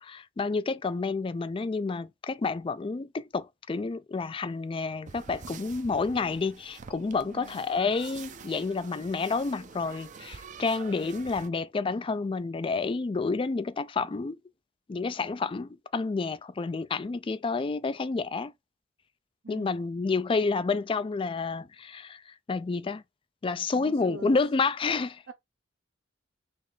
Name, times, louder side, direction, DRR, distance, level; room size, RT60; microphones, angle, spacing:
voice 1, 0.0-14.4 14.9-18.5 19.5-22.2 22.5-23.0 23.4-25.2, left 4 dB, 25° left, 0.3 m, -29 dB
sound 1, 5.1-11.5, right 5 dB, 40° right, 0.5 m, -47 dB
voice 2, 7.2-7.7 19.4-19.7 23.7-24.4 25.3-25.4, right 3 dB, 75° right, 0.7 m, -44 dB
4.2 x 3.4 x 3.3 m
head